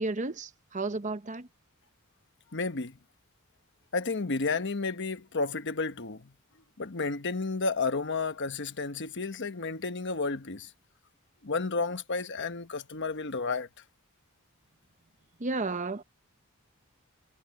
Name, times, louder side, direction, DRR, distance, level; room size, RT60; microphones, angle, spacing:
voice 1, 0.0-1.5 15.4-16.0, right 3 dB, 35° right, 0.9 m, -32 dB
voice 2, 2.5-3.0 3.9-6.3 6.8-10.7 11.4-13.7, left 3 dB, 55° left, 1.1 m, -31 dB
head